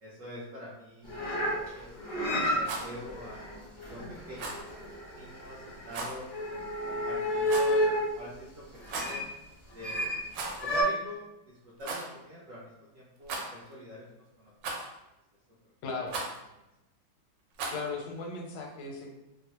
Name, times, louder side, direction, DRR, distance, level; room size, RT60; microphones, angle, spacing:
voice 1, 0.0-4.0 4.3-4.7 5.1-7.9 8.1-9.2 9.7-10.1 10.6-14.1 14.4-14.5, left 1 dB, 70° right, -6 dB, 0.8 m, -45 dB
sound 1, 1.0-8.1 8.8-9.3 9.8-10.2 10.6-10.8, equal, 50° left, 0.3 m, -31 dB
Rattle, 2.5-2.9 4.3-4.6 5.9-6.2 7.4-7.8 8.8-9.2 10.3-10.7 11.0-11.1 11.8-12.1 13.2-13.7 14.6-15.0 16.1-16.4 17.5-17.9, right 3 dB, 90° right, 1.3 m, -37 dB
voice 2, 15.8-16.2 17.7-19.1, left 4 dB, 85° left, 1 dB, 1.3 m, -37 dB
3.0 x 2.1 x 2.8 m, 0.94 s
omnidirectional pair, 1.9 m